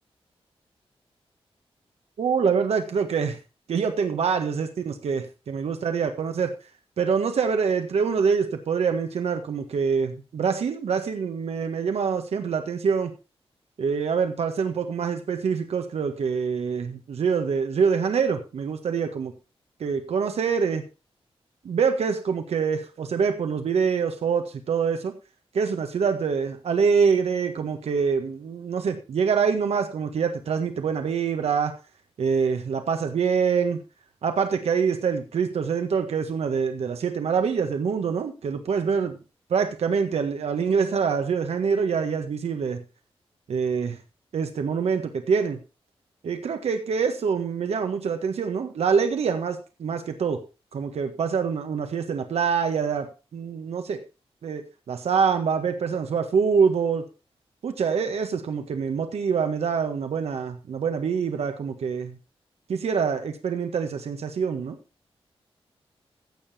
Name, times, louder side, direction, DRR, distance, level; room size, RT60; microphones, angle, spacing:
voice 1, 2.2-3.4 3.7-6.5 7.0-13.1 13.8-19.3 19.8-20.8 21.6-25.1 25.5-31.7 32.2-33.8 34.2-39.1 39.5-42.8 43.5-44.0 44.3-45.6 46.2-50.4 50.7-54.0 54.4-54.6 54.9-57.0 57.6-62.2 62.7-64.8, right 6 dB, 85° right, 6 dB, 1.6 m, -25 dB
15.5 x 7.1 x 4.3 m, 0.31 s
wide cardioid pair, 130°, 10 cm